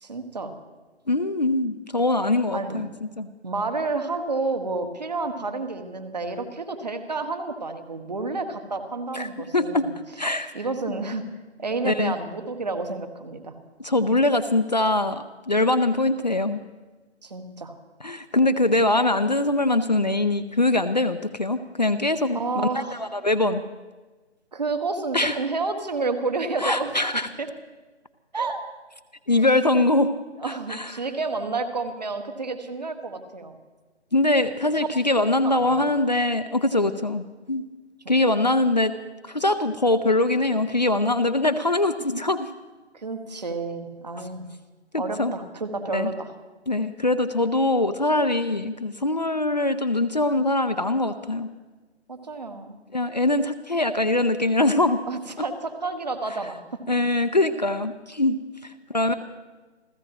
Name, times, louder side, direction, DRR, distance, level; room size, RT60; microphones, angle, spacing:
voice 1, 0.0-0.5 2.5-2.9 3.4-9.9 10.5-11.3 11.6-13.6 17.2-17.8 22.3-23.1 24.5-26.9 27.4-27.5 28.3-28.6 29.3-29.5 30.4-33.6 35.1-35.2 35.4-35.9 42.9-44.5 44.9-46.3 52.1-52.8 55.1-56.6, right 3 dB, 40° right, 7 dB, 1.6 m, -30 dB
voice 2, 1.1-3.3 9.1-9.9 10.2-10.5 11.8-12.2 13.8-16.6 18.0-23.6 25.1-25.4 26.6-27.3 29.3-30.1 30.5-30.9 34.1-37.6 38.1-38.9 39.3-42.5 44.9-45.3 45.9-46.1 46.7-51.5 52.9-55.0 56.9-59.1, left 2 dB, 40° left, 9 dB, 0.6 m, -23 dB
29.5 x 14.5 x 3.0 m, 1.2 s
figure-of-eight pair, 175°, 34 cm